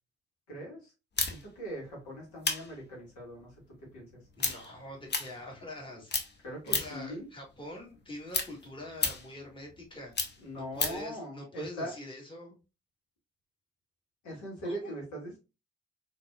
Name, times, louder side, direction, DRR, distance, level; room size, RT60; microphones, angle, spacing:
voice 1, 0.5-0.9 1.3-3.5 3.9-4.1 6.4-7.3 10.4-11.9 14.2-15.4, right 1 dB, 70° left, 1.6 m, -40 dB
sound 1, 1.2-5.8 6.1-7.1 7.5-11.1, left 4 dB, 35° left, 0.9 m, -34 dB
voice 2, 4.4-6.1 6.4-12.6 14.6-15.0, left 1 dB, 15° left, 1.6 m, -45 dB
3.9 x 2.7 x 2.3 m
hypercardioid pair, 40°, 30 cm